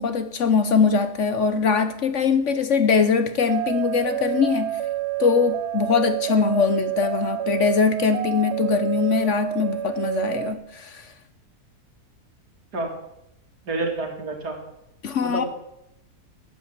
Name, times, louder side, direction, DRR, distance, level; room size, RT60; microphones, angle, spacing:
voice 1, 0.0-4.8 5.2-11.1 15.0-15.4, left 5 dB, 55° left, 1.0 m, -22 dB
sound 1, 3.5-10.5, right 13 dB, 60° right, 0.8 m, -28 dB
voice 2, 13.7-14.6 15.2-15.5, right 2 dB, 80° right, 3.3 m, -28 dB
13.0 x 7.8 x 8.2 m
omnidirectional pair, 1.7 m